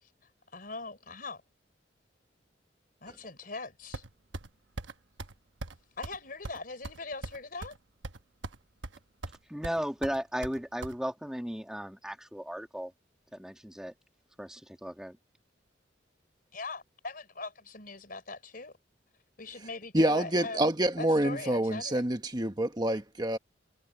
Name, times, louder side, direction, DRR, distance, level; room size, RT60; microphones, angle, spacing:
voice 1, 0.5-1.4 3.0-4.0 6.0-7.8 16.5-18.7 19.4-20.7 21.0-22.0, left 3 dB, 50° left, 4.1 m, -41 dB
sound 1, 3.9-4.5 4.8-4.9 5.2-5.3 5.6-5.8 6.0-6.2 6.4-7.8 8.0-8.6 8.8-9.4 9.6-10.9, right 2 dB, 90° right, 1.1 m, -40 dB
voice 2, 9.5-12.9 13.3-13.9 14.4-15.2, equal, 5° right, 1.5 m, -35 dB
voice 3, 19.9-23.4, right 1 dB, 20° right, 1.3 m, -27 dB
head